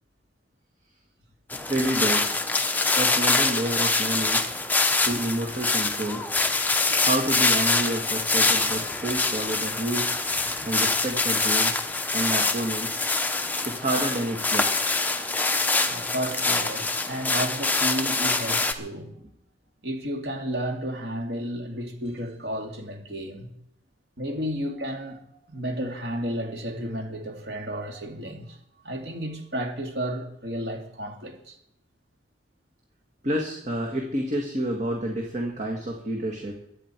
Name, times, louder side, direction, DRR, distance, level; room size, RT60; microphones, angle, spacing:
sound 1, 1.5-18.7, left 3 dB, 10° left, 0.8 m, -25 dB
voice 1, 1.5-2.3 3.0-4.4 5.0-6.2 7.0-10.1 10.6-11.7 12.1-12.9 13.7-14.7 33.2-36.6, right 1 dB, 35° right, 1.8 m, -29 dB
voice 2, 15.2-15.5 15.8-19.1 19.8-23.5 24.2-28.6 28.8-31.6, equal, 55° right, 2.6 m, -32 dB
23.0 x 9.8 x 4.5 m
head